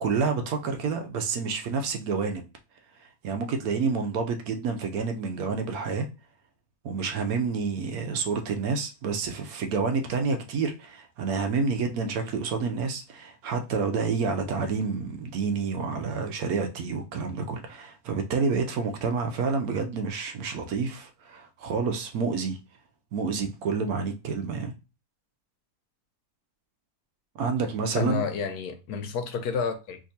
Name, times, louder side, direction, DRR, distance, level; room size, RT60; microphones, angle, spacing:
voice 1, 0.0-2.4 3.2-6.1 6.8-22.6 23.1-24.7 27.3-28.2, right 5 dB, 70° right, 1.0 m, -29 dB
voice 2, 28.0-30.0, left 5 dB, 75° left, 1.1 m, -30 dB
3.4 x 2.8 x 2.7 m
omnidirectional pair, 1.8 m